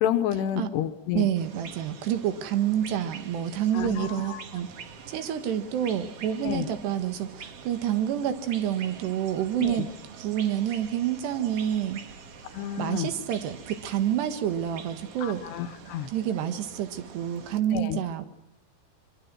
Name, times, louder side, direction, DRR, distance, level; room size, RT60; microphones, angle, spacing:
voice 1, 0.0-1.3 3.7-4.4 6.4-6.7 9.6-9.8 12.5-13.1 15.2-16.1 17.7-18.0, left 10 dB, 80° left, 10 dB, 3.2 m, -29 dB
voice 2, 1.1-4.7 5.1-9.9 10.2-12.0 12.8-15.4 16.1-18.3, right 10 dB, 75° right, 9 dB, 3.6 m, -28 dB
sound 1, 1.3-17.6, right 6 dB, 55° right, 1.8 m, -45 dB
25.0 x 24.0 x 6.1 m, 0.88 s
omnidirectional pair, 4.9 m